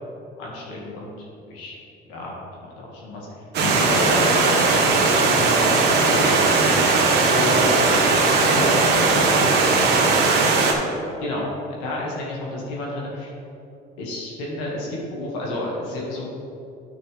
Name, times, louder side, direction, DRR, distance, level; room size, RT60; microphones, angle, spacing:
voice 1, 0.4-1.8 2.1-6.3 7.3-7.8 8.3-9.3 11.2-13.3 14.0-16.3, left 1 dB, 90° left, -3 dB, 2.0 m, -30 dB
Stream, 3.5-10.7, right 3 dB, 60° right, 1.4 m, -18 dB
10.0 x 6.1 x 3.5 m, 2.6 s
supercardioid pair, 95°, 19 cm